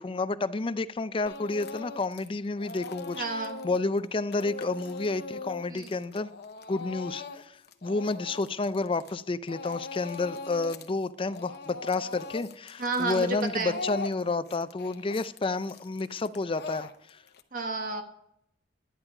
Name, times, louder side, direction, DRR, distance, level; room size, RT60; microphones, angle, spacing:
voice 1, 0.0-3.2 3.6-6.3 6.7-7.5 7.8-16.9, left 3 dB, 30° left, 0.5 m, -30 dB
Speech / Crying sobbing, 1.3-2.3 2.6-9.2 9.5-10.9 11.2-17.4, left 3 dB, 65° left, 0.9 m, -40 dB
voice 2, 3.2-3.6 5.7-5.9 12.8-13.8 17.5-18.0, right 3 dB, 50° right, 1.4 m, -31 dB
11.0 x 9.7 x 4.9 m
head